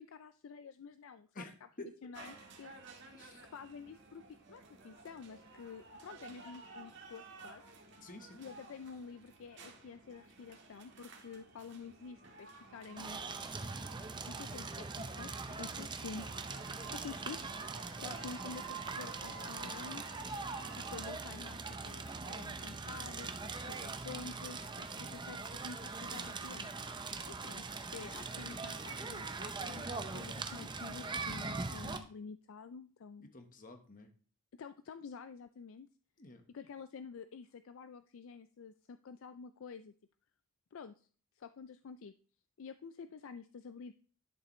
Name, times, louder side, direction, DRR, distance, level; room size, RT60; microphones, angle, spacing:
voice 1, 0.0-1.4 2.0-3.1 3.5-7.6 8.4-13.2 14.3-16.3 16.9-20.1 20.8-33.3 34.5-35.9 36.5-39.9 40.7-41.1 41.4-42.1 42.6-43.9, left 5 dB, 60° left, 11 dB, 0.4 m, -49 dB
voice 2, 1.3-1.9 3.1-3.4 8.0-8.4 13.6-13.9 24.9-25.2 33.2-34.1 36.2-36.4, left 1 dB, 40° left, 6 dB, 1.2 m, -51 dB
sound 1, 2.1-21.1, right 4 dB, 55° right, 1.6 m, -53 dB
Crackle, 13.0-32.0, right 4 dB, 20° right, 0.6 m, -42 dB
11.0 x 6.7 x 3.1 m, 0.42 s
head